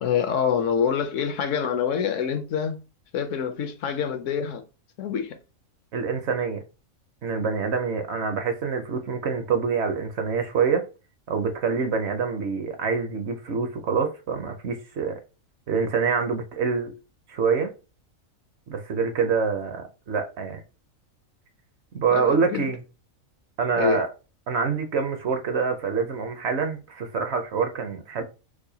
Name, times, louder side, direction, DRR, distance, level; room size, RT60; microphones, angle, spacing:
voice 1, 0.0-2.8 3.1-4.6 5.0-5.4 22.1-22.7 23.8-24.0, left 7 dB, 70° left, 0.9 m, -26 dB
voice 2, 5.9-6.6 7.2-10.8 11.3-15.2 15.7-16.9 17.3-17.7 18.7-20.6 21.9-22.8 23.6-24.1 24.5-28.2, right 5 dB, 60° right, 0.8 m, -26 dB
4.7 x 2.1 x 2.7 m
omnidirectional pair, 1.4 m